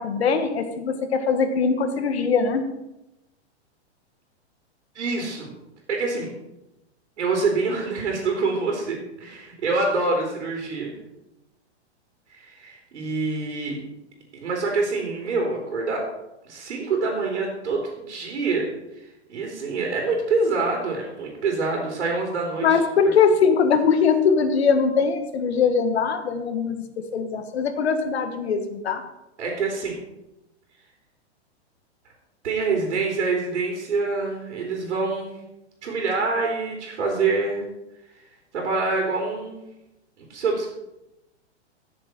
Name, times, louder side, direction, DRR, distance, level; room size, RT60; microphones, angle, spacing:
voice 1, 0.0-2.6 22.6-26.8 27.1-29.0, left 5 dB, 65° left, 7 dB, 1.6 m, -21 dB
voice 2, 4.9-5.5 5.9-6.3 7.2-10.9 12.3-13.8 14.3-16.0 16.4-18.7 19.3-22.8 29.4-30.0 32.4-35.3 35.8-37.6 38.5-39.6 40.2-40.7, right 3 dB, 80° right, 0 dB, 3.5 m, -26 dB
14.5 x 7.1 x 4.4 m, 0.92 s
hypercardioid pair, 175°, 34 cm